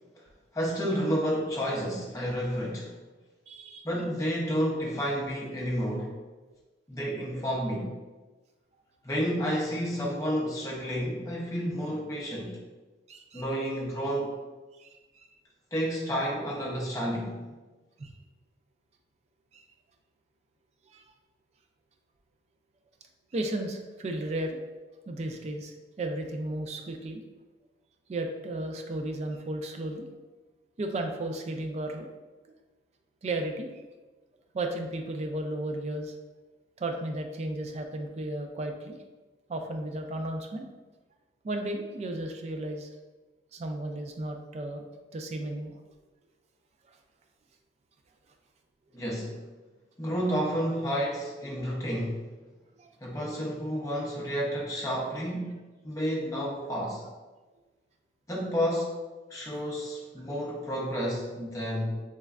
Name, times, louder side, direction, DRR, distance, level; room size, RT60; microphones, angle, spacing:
voice 1, 0.5-3.0 3.8-6.1 6.9-7.9 9.0-12.6 13.3-14.3 15.7-17.5 48.9-49.4 50.0-52.2 53.0-57.0 58.3-59.0 59.3-62.0, equal, 20° left, -4 dB, 0.6 m, -30 dB
voice 2, 3.5-3.9 13.1-13.4 14.8-15.3 18.0-18.1 19.5-19.6 20.9-21.0 23.3-24.6 25.1-27.2 28.1-30.1 30.8-32.1 33.2-33.7 34.5-36.1 36.8-39.0 39.5-40.6 41.4-42.9 43.5-44.8 45.1-45.8 46.9-47.0 52.8-52.9, right 1 dB, 40° right, 4 dB, 0.3 m, -34 dB
3.3 x 3.1 x 2.3 m, 1.2 s
head